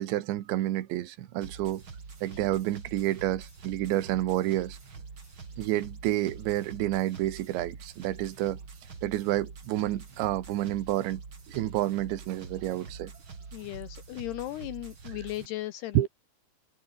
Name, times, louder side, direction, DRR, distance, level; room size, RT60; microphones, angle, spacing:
voice 1, 0.0-1.8 2.2-4.8 5.6-8.6 9.0-11.2 11.5-13.1 16.0-16.1, right 14 dB, 75° right, 3.7 m, -29 dB
sound 1, 1.4-15.5, right 5 dB, 30° right, 3.4 m, -45 dB
voice 2, 13.5-16.1, left 16 dB, 75° left, 2.5 m, -37 dB
omnidirectional pair, 5.4 m